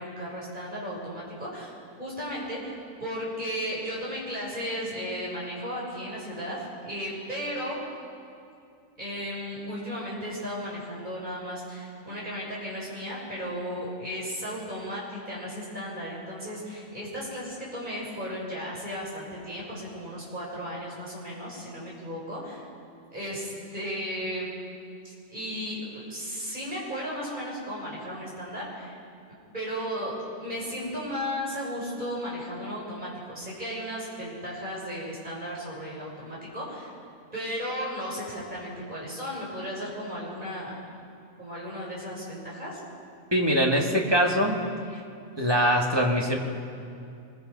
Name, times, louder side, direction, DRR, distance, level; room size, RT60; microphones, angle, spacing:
voice 1, 0.0-1.7 2.0-7.8 9.0-22.7 23.1-24.5 25.3-29.0 29.5-36.9 37.3-40.8 41.4-42.8, equal, 30° right, -5 dB, 6.9 m, -35 dB
voice 2, 43.3-44.6 45.4-46.4, equal, 15° right, 0 dB, 2.2 m, -23 dB
25.5 x 22.0 x 5.5 m, 2.5 s
omnidirectional pair, 1.5 m